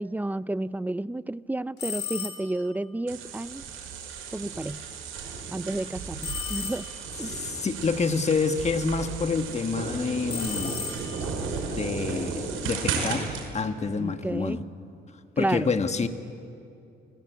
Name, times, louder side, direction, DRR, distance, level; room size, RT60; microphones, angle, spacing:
voice 1, 0.0-3.7 4.3-4.8 5.5-6.9 7.2-7.3 14.0-14.6 15.4-15.7, right 1 dB, 10° right, 17 dB, 0.5 m, -31 dB
sound 1, 1.8-2.7 6.2-7.2 10.3-11.4, left 7 dB, 60° left, 3.3 m, -35 dB
sound 2, 3.1-13.5, right 5 dB, 85° right, 5.5 m, -34 dB
voice 2, 7.3-10.8 11.7-13.3 13.5-14.6 15.4-16.1, left 4 dB, 35° left, 8 dB, 1.6 m, -27 dB
29.5 x 19.0 x 8.2 m, 2.7 s
cardioid pair, 90°, 20 cm